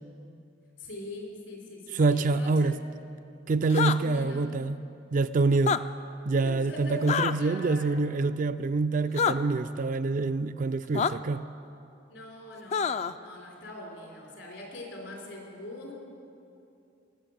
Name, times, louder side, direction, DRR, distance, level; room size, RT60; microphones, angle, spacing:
voice 1, 0.8-2.7 3.8-4.4 6.4-8.1 12.1-15.9, left 1 dB, 85° left, -1 dB, 3.8 m, -42 dB
voice 2, 1.9-2.8 3.5-4.8 5.1-5.8 6.3-11.4, right 3 dB, 45° right, 13 dB, 0.3 m, -26 dB
sound 1, 3.7-4.0 5.5-5.8 7.1-7.3 9.2-9.3 10.9-11.1 12.7-13.1, left 6 dB, 35° left, 0.3 m, -26 dB
18.0 x 7.2 x 7.7 m, 2.7 s
head